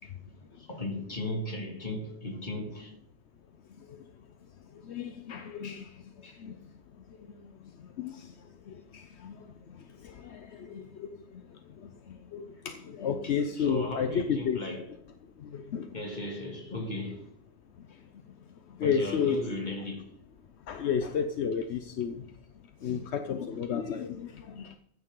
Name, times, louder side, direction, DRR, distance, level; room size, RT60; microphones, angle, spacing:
voice 1, 0.0-3.0 6.2-6.4 13.2-15.0 15.9-17.3 18.8-20.1 22.9-23.0 23.5-23.6, left 1 dB, 40° left, 2.4 m, -37 dB
voice 2, 4.7-6.6 7.3-7.5 7.8-14.6 15.4-16.0 17.9-18.0 18.7-19.4 20.7-22.3 22.8-24.8, left 7 dB, 75° left, 1.0 m, -33 dB
14.0 x 9.4 x 3.8 m
omnidirectional pair, 1.1 m